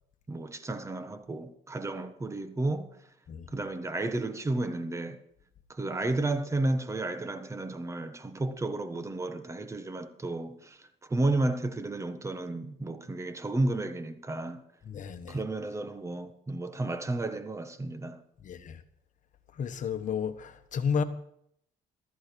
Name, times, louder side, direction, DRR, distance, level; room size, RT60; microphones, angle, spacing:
voice 1, 0.3-3.0 3.5-5.2 5.7-14.6 15.3-18.2, right 2 dB, 15° right, 1.4 m, -32 dB
voice 2, 14.9-15.4 18.4-18.8 19.6-21.0, left 6 dB, 50° left, 1.4 m, -32 dB
14.0 x 14.0 x 4.7 m
cardioid pair, 110°, 17 cm